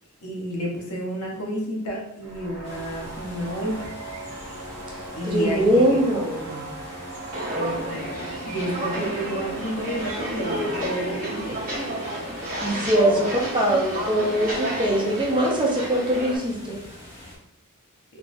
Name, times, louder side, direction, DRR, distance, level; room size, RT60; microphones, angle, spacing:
voice 1, 0.2-3.9 5.1-6.0 8.4-11.6, equal, 80° left, -1 dB, 1.0 m, -30 dB
sound 1, 2.2-10.9, right 2 dB, 75° right, 1.3 m, -38 dB
sound 2, 2.6-17.4, left 1 dB, 25° left, 1.2 m, -44 dB
voice 2, 5.2-6.7 7.5-8.1 12.6-16.8, right 1 dB, 20° right, -2 dB, 0.7 m, -22 dB
Walk footsteps, 7.3-16.4, right 1 dB, 40° right, 1.2 m, -31 dB
3.6 x 2.9 x 2.6 m, 0.78 s
head